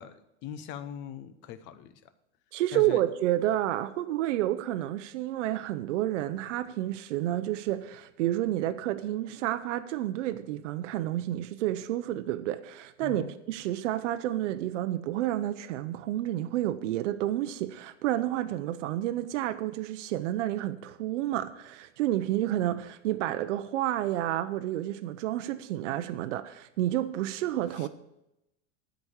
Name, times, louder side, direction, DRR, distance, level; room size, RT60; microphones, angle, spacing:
voice 1, 0.0-2.0 2.7-3.0 13.0-13.3 27.7-27.9, left 9 dB, 30° left, 0.7 m, -41 dB
voice 2, 2.5-27.9, right 13 dB, 75° right, 0.8 m, -30 dB
12.5 x 5.3 x 8.6 m
supercardioid pair, 170°, 36 cm